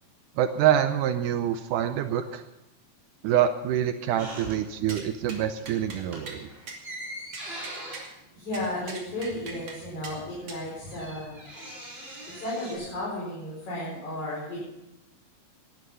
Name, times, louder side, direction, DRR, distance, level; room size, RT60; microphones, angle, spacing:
voice 1, 0.4-2.4 3.2-6.5, right 10 dB, 75° right, 9 dB, 2.1 m, -26 dB
sound 1, 4.2-5.1 5.4-5.6 6.0-9.5 9.7-9.8 10.0-12.7, right 1 dB, 15° right, 4.6 m, -42 dB
sound 2, 4.9-5.0 5.3-5.4 5.7-6.0 6.3-6.4 6.7-6.8 7.3-8.1 8.5-9.8 10.0-10.2 10.5-10.6, right 4 dB, 45° right, 3.4 m, -40 dB
voice 2, 8.3-11.4 12.3-14.6, left 1 dB, 60° left, -6 dB, 6.0 m, -34 dB
18.0 x 11.5 x 5.5 m, 0.91 s
omnidirectional pair, 3.8 m